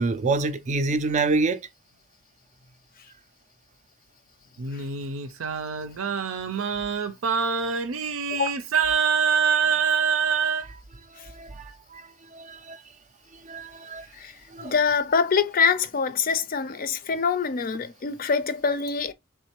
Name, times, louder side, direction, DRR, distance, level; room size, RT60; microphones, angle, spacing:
voice 1, 0.0-1.7 10.5-10.8 11.1-12.8 13.3-14.1 14.5-14.8, right 3 dB, 35° right, 0.4 m, -28 dB
Singing, 4.6-10.6, right 6 dB, 90° right, 0.6 m, -25 dB
voice 2, 14.6-19.1, left 5 dB, 45° left, 0.5 m, -24 dB
3.6 x 3.2 x 2.9 m
head